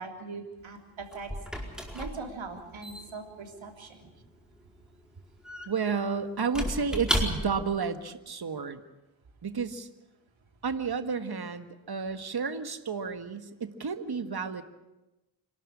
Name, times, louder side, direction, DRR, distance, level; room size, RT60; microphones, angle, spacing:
voice 1, 0.0-1.3 1.9-4.1, right 4 dB, 85° right, 3 dB, 3.5 m, -41 dB
Squeak / Wood, 0.6-7.8, equal, ahead, 4.6 m, -35 dB
voice 2, 5.7-8.8 9.4-9.9 10.6-14.6, right 5 dB, 55° right, 9 dB, 1.7 m, -31 dB
26.5 x 12.5 x 9.9 m, 1.0 s
cardioid pair, 55°, 45 cm